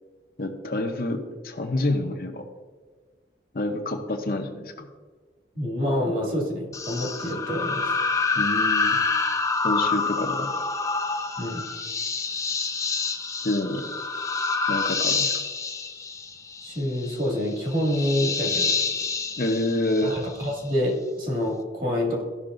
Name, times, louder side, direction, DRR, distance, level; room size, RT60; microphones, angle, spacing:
voice 1, 0.4-2.4 3.5-4.9 8.4-9.0 9.6-10.5 13.4-13.9 14.7-15.3 19.4-20.2, left 1 dB, 50° left, 4 dB, 0.8 m, -27 dB
voice 2, 5.5-7.9 11.4-11.6 16.6-18.7 20.0-22.2, left 1 dB, 50° right, -2 dB, 2.1 m, -27 dB
sound 1, 6.7-20.6, left 4 dB, 15° left, 0.4 m, -27 dB
13.5 x 5.8 x 2.6 m, 1.4 s
head